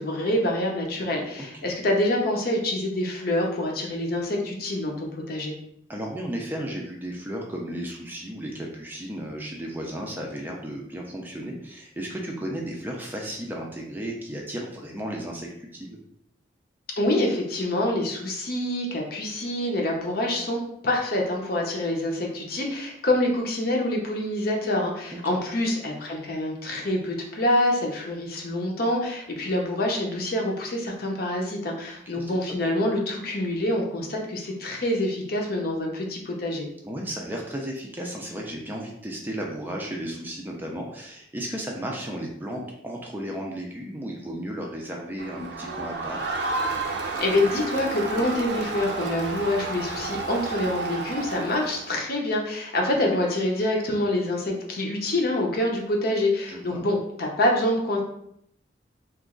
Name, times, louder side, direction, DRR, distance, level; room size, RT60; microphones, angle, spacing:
voice 1, 0.0-5.5 17.0-36.7 47.2-58.0, left 1 dB, 50° left, 0 dB, 0.7 m, -26 dB
voice 2, 5.9-16.0 32.1-32.3 36.8-46.2 52.9-53.0 56.5-56.9, right 1 dB, 10° right, -1 dB, 0.4 m, -34 dB
Crowd, 45.2-52.0, right 3 dB, 60° right, 0.5 m, -31 dB
2.9 x 2.4 x 3.6 m, 0.72 s
head